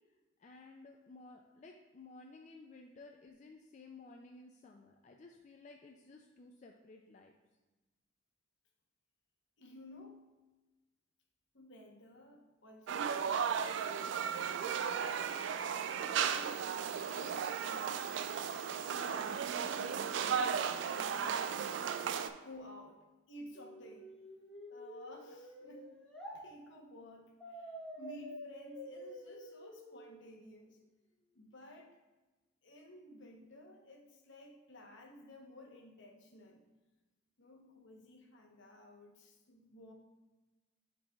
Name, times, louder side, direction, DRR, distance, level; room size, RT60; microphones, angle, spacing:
voice 1, 0.4-7.3, left 3 dB, 35° left, 1 dB, 0.3 m, -55 dB
voice 2, 9.6-10.3 11.5-15.1 15.9-16.6 17.2-18.1 18.9-21.8 22.2-23.0 23.3-24.1 24.7-26.0 26.3-30.8 31.3-32.0 32.6-36.6 37.4-39.9, left 1 dB, 65° left, 1 dB, 0.9 m, -54 dB
sound 1, 12.9-22.3, right 7 dB, 65° right, 0.3 m, -35 dB
sound 2, 23.5-26.4 27.4-30.4, equal, 5° left, 1.0 m, -49 dB
10.5 x 4.0 x 2.3 m, 1.2 s
head